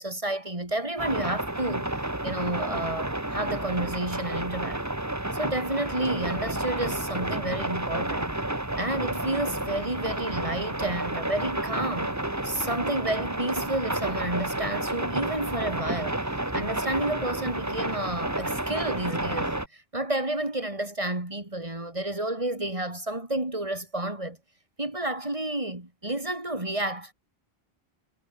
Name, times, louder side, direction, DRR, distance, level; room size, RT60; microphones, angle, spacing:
voice 1, 0.0-1.9 2.2-4.9 5.3-8.3 8.8-12.2 12.4-16.2 16.5-24.4 24.8-27.1, right 1 dB, 30° right, 3.8 m, -30 dB
sound 1, 1.0-19.7, right 1 dB, 15° right, 1.8 m, -31 dB
omnidirectional pair, 1.1 m